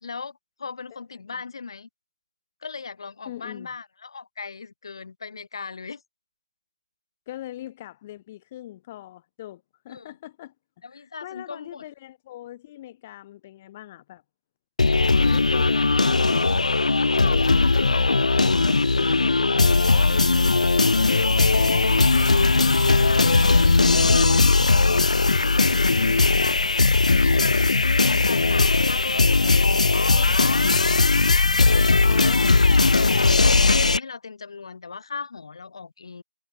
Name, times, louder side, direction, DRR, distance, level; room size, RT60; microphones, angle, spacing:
voice 1, 0.0-1.9 2.6-6.0 9.9-10.1 10.8-11.8 17.0-17.6 17.9-18.8 20.9-26.6 27.0-31.1 31.6-32.7 33.2-36.2, left 5 dB, 30° left, 5.8 m, -38 dB
voice 2, 3.2-3.7 7.3-10.5 10.9-14.2 15.2-16.3 17.2-20.7 27.4-27.7 32.0-32.9, left 14 dB, 10° left, 0.7 m, -41 dB
sound 1, 14.8-34.0, left 3 dB, 50° left, 0.7 m, -19 dB
figure-of-eight pair, 175°, 5 cm